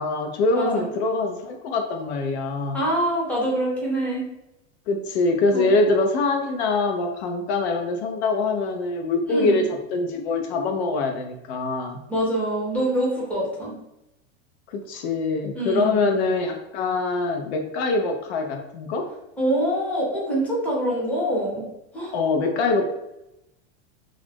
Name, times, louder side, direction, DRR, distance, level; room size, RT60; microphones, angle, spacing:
voice 1, 0.0-2.8 4.9-12.0 14.7-19.1 22.1-22.9, left 3 dB, 70° left, 4 dB, 0.5 m, -24 dB
voice 2, 0.5-0.8 2.7-4.3 5.5-5.7 9.3-9.6 12.1-13.7 15.5-16.1 19.4-21.6 21.9-22.1, right 1 dB, 5° left, -5 dB, 0.6 m, -25 dB
2.4 x 2.0 x 3.3 m, 0.88 s
supercardioid pair, 145°, 34 cm